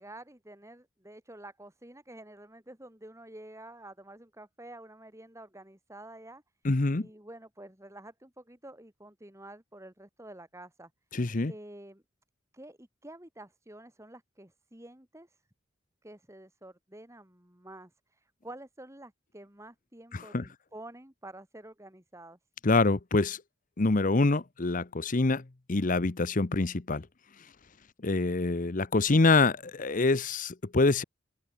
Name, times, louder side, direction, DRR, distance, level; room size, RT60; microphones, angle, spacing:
voice 1, 0.0-6.4 7.0-10.9 11.5-12.0 12.5-15.4 16.0-22.4, right 1 dB, 15° right, 3.3 m, -49 dB
voice 2, 6.6-7.1 11.1-11.5 20.1-20.5 22.6-23.4 23.8-27.1 28.0-31.0, left 3 dB, 45° left, 0.8 m, -26 dB
open air
head